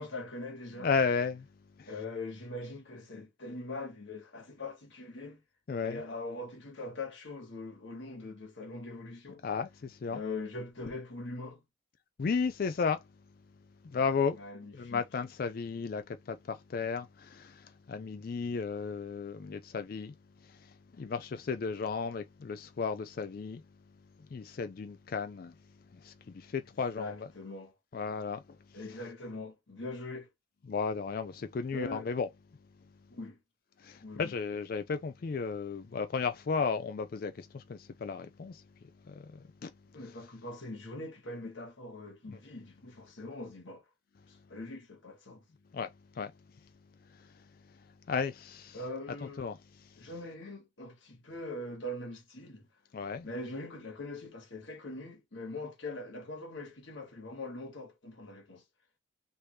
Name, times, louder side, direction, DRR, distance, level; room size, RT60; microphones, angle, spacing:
voice 1, 0.0-0.9 1.9-5.4 5.8-9.4 10.1-11.6 14.4-15.0 26.9-27.7 28.7-30.3 31.7-32.1 33.1-33.4 34.0-34.3 39.9-43.8 44.3-45.4 48.7-49.5 50.0-52.7 53.2-58.6, left 2 dB, 70° left, 1.5 m, -42 dB
voice 2, 0.8-1.5 1.8-2.0 5.7-6.0 9.4-10.2 12.2-13.1 13.8-14.4 14.7-23.6 24.3-25.6 25.9-27.3 27.9-28.8 30.7-32.3 33.8-38.6 39.0-39.7 42.3-42.4 45.7-46.3 46.6-46.7 47.0-48.8 49.1-50.1 52.9-53.3, left 5 dB, 45° left, 0.3 m, -34 dB
3.4 x 2.7 x 3.1 m
head